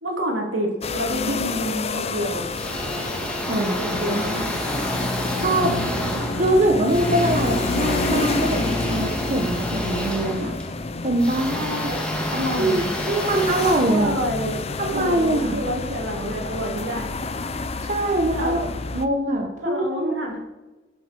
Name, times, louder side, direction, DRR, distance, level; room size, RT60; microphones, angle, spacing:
voice 1, 0.0-2.5 3.5-4.5 11.5-12.0 12.3-12.9 13.9-14.6 14.9-17.1 18.4-18.6 19.6-20.4, equal, 80° right, 0 dB, 3.0 m, -28 dB
sound 1, 0.8-19.1, left 3 dB, 35° left, 0.6 m, -29 dB
sound 2, 2.5-14.7, equal, 5° left, 1.6 m, -30 dB
voice 2, 3.5-4.4 5.3-5.9 6.4-10.5 11.0-11.5 12.6-14.1 14.8-15.6 17.9-18.7 18.9-20.4, right 1 dB, 40° right, 3 dB, 1.0 m, -23 dB
11.5 x 7.7 x 4.5 m, 1.1 s
head